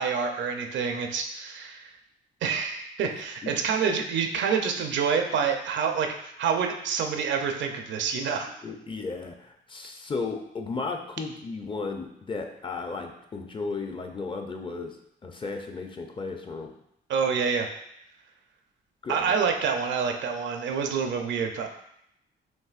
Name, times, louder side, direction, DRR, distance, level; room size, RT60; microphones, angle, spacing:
voice 1, 0.0-1.9 2.4-8.5 17.1-17.7 19.1-21.7, right 6 dB, 70° right, 4 dB, 0.6 m, -27 dB
voice 2, 8.6-15.0 15.2-16.7 19.0-19.3, left 4 dB, 25° left, 4 dB, 0.5 m, -34 dB
5.4 x 3.0 x 2.4 m, 0.76 s
cardioid pair, 90°, 20 cm